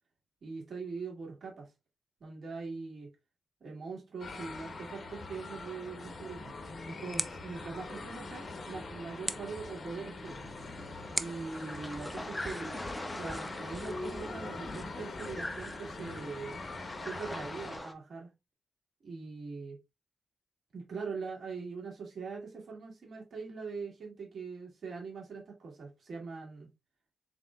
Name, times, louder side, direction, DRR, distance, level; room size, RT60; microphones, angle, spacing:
voice 1, 0.4-1.7 2.2-3.1 3.6-6.5 6.9-10.5 11.1-12.7 13.2-16.6 17.0-18.3 19.0-19.8 20.7-26.7, right 4 dB, 75° right, 2.0 m, -42 dB
sound 1, 4.2-17.8, left 3 dB, 55° left, 0.9 m, -43 dB
sound 2, 6.0-16.0, equal, 5° right, 0.4 m, -44 dB
sound 3, 10.2-17.9, left 1 dB, 15° left, 0.8 m, -44 dB
4.9 x 4.1 x 2.3 m
cardioid pair, 85°, 0 cm